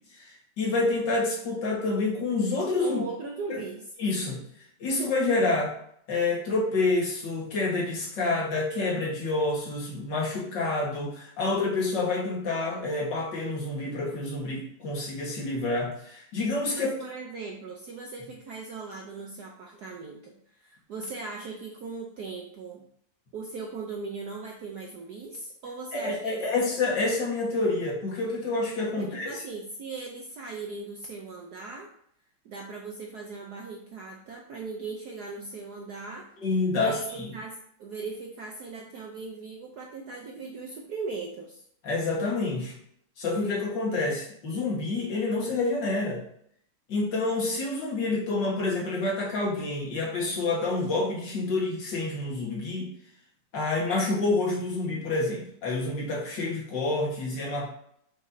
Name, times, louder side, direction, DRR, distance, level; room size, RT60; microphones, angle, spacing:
voice 1, 0.2-3.0 3.5-3.6 4.0-4.4 4.8-5.7 6.1-16.9 25.9-29.4 36.4-37.3 41.8-42.8 43.2-46.2 46.9-52.9 53.5-57.7, left 3 dB, 55° left, -3 dB, 2.1 m, -28 dB
voice 2, 2.8-3.8 16.7-22.8 23.3-26.4 29.0-31.9 32.4-36.3 36.8-41.6, right 4 dB, 65° right, 0 dB, 1.0 m, -39 dB
6.1 x 6.1 x 2.7 m, 0.68 s
omnidirectional pair, 2.4 m